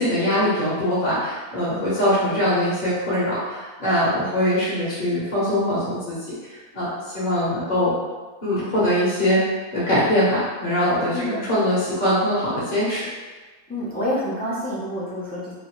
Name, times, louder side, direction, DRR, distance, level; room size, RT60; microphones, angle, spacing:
voice 1, 0.0-6.3 6.7-6.9 7.1-7.9 8.4-9.4 9.7-13.1, equal, 40° left, -9 dB, 1.1 m, -22 dB
voice 2, 11.1-11.5 13.7-15.5, equal, 15° left, -8 dB, 0.3 m, -27 dB
3.0 x 2.7 x 3.0 m, 1.3 s
omnidirectional pair, 1.5 m